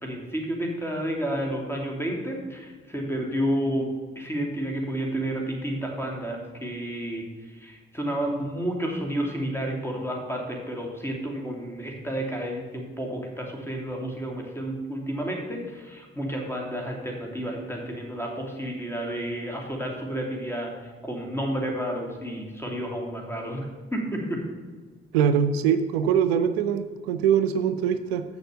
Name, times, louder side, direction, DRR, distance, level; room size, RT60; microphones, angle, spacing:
voice 1, 0.0-3.9 4.1-24.4, right 1 dB, 10° left, 0 dB, 2.7 m, -31 dB
voice 2, 25.1-28.2, right 8 dB, 85° right, 10 dB, 0.5 m, -23 dB
6.9 x 6.6 x 6.8 m, 1.4 s
hypercardioid pair, 40°, 30 cm